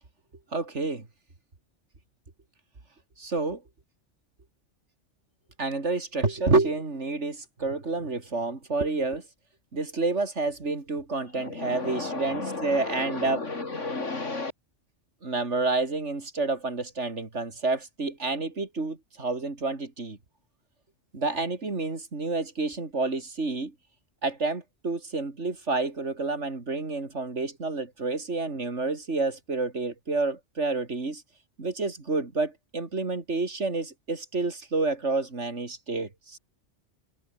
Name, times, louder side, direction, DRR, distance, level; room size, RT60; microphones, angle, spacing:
voice 1, 0.5-1.1 3.2-3.6 5.6-9.2 9.7-13.4 15.2-20.2 21.1-23.7 24.2-31.2 31.6-36.4, right 3 dB, 75° right, 3.5 m, -29 dB
voice 2, 11.3-14.5, left 3 dB, 90° left, 3.6 m, -33 dB
omnidirectional pair, 1.2 m